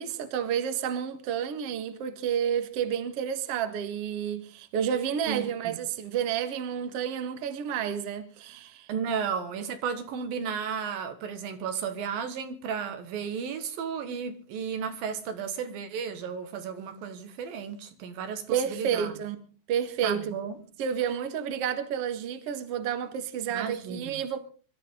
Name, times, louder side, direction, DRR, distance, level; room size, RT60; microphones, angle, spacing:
voice 1, 0.0-8.9 18.5-19.4 19.7-20.3 20.8-24.4, right 8 dB, 50° right, 2.3 m, -30 dB
voice 2, 5.3-5.8 8.9-19.1 20.0-20.6 23.5-24.2, right 7 dB, 85° right, 3.5 m, -34 dB
24.5 x 13.0 x 3.8 m
omnidirectional pair, 4.0 m